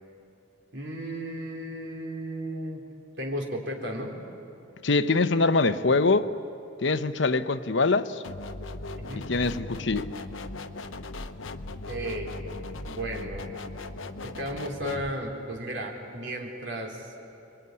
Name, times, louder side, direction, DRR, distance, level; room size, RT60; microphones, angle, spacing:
voice 1, 0.7-2.9 3.2-4.1 9.0-9.3 11.9-12.4 12.8-13.5 14.2-17.1, right 1 dB, 60° right, 4.0 m, -34 dB
voice 2, 4.8-6.3 6.8-8.2 9.2-10.1, left 3 dB, 65° left, 0.9 m, -24 dB
sound 1, 8.2-15.1, left 2 dB, 85° left, 1.0 m, -38 dB
26.5 x 22.5 x 9.7 m
head